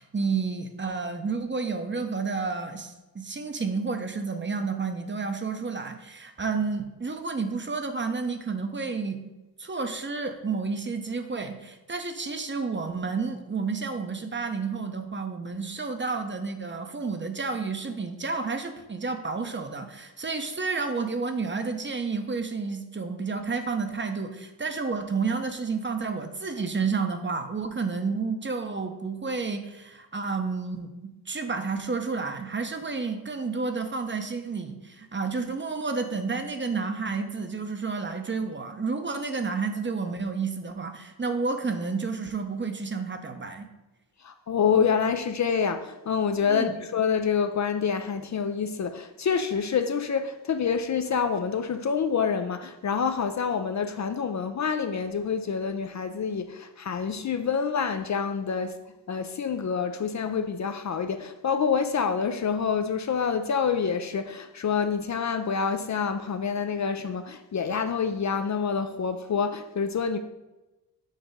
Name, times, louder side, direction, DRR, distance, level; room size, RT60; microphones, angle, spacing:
voice 1, 0.0-9.3 9.6-43.7 46.5-46.7, right 4 dB, 30° right, 6 dB, 0.7 m, -30 dB
voice 2, 44.2-58.7 59.1-70.2, left 6 dB, 45° left, 8 dB, 0.5 m, -27 dB
6.5 x 2.9 x 5.0 m, 1.0 s
cardioid pair, 60°, 41 cm